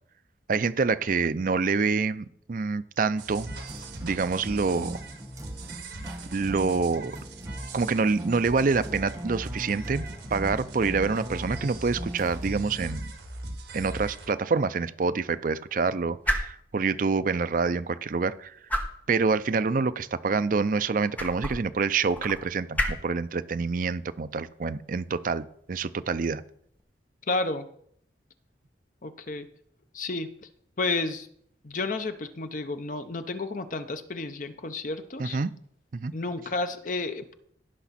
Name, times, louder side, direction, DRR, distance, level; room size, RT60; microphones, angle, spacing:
voice 1, 0.5-3.5 4.0-5.0 6.3-7.2 7.7-10.0 10.3-13.1 13.7-18.5 19.1-26.4 35.2-35.5 35.9-36.1, right 4 dB, 50° right, 14 dB, 0.5 m, -26 dB
sound 1, 3.2-14.3, right 2 dB, 75° right, 1.7 m, -40 dB
sound 2, 3.5-12.9, equal, 20° right, 1.1 m, -41 dB
sound 3, 13.2-26.8, equal, 10° left, 1.2 m, -37 dB
voice 2, 27.3-27.7 29.0-29.5 29.9-30.3 30.8-31.3 31.6-35.4 36.1-37.3, left 3 dB, 45° left, 9 dB, 0.8 m, -31 dB
16.0 x 5.9 x 4.2 m, 0.67 s
head